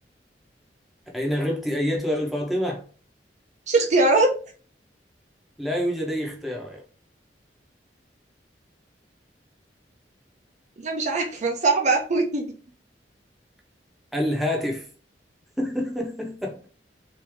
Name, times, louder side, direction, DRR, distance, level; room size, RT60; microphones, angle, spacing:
voice 1, 1.1-2.8 5.6-6.8 14.1-14.9 15.6-16.7, equal, ahead, 0.8 m, -27 dB
voice 2, 3.7-4.3 10.8-12.5, right 3 dB, 40° right, 0.6 m, -21 dB
3.1 x 2.6 x 3.4 m
head